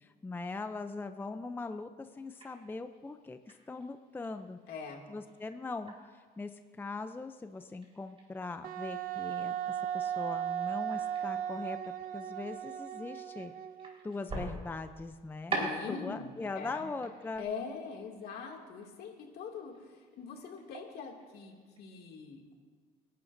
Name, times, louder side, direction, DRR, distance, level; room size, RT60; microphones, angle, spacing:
voice 1, 0.0-4.6 5.1-5.9 6.4-11.8 12.1-13.5 14.0-17.5, left 3 dB, 10° left, 9 dB, 0.5 m, -41 dB
sound 1, 2.1-21.8, right 2 dB, 35° right, 4.3 m, -47 dB
voice 2, 4.7-5.0 15.5-16.9 17.4-22.5, left 5 dB, 70° left, 1 dB, 2.4 m, -43 dB
Wind instrument woodwind instrument, 8.6-14.1, right 10 dB, 55° right, 0.7 m, -36 dB
27.5 x 11.0 x 2.6 m, 1.6 s
cardioid pair, 110°, 17 cm